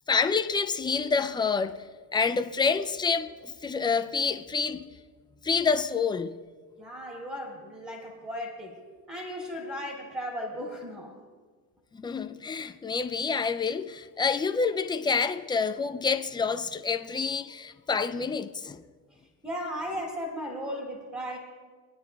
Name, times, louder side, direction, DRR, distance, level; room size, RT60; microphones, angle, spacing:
voice 1, 0.1-1.8 2.1-4.9 5.4-6.3 11.9-18.8, left 5 dB, 10° left, 0.3 m, -28 dB
voice 2, 6.8-8.7 9.1-11.2 19.4-21.4, equal, 10° right, 2.5 m, -36 dB
27.0 x 9.4 x 2.3 m
supercardioid pair, 90°, 47 cm